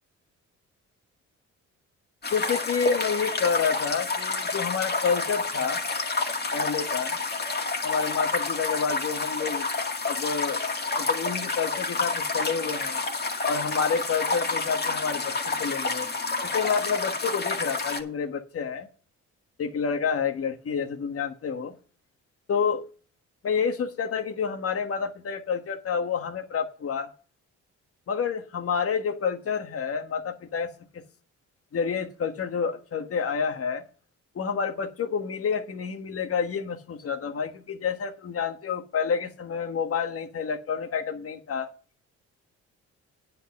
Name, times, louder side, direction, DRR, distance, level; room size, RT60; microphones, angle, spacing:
sound 1, 2.2-18.0, left 3 dB, 35° left, 2.0 m, -29 dB
voice 1, 2.3-5.8 6.5-7.2 7.8-9.7 10.0-10.6 11.0-13.0 13.4-16.1 16.5-18.9 19.6-21.7 22.5-22.9 23.4-27.1 28.1-31.0 31.7-33.8 34.3-41.7, left 6 dB, 50° left, 1.4 m, -29 dB
9.7 x 6.0 x 6.5 m
cardioid pair, 90°, 30 cm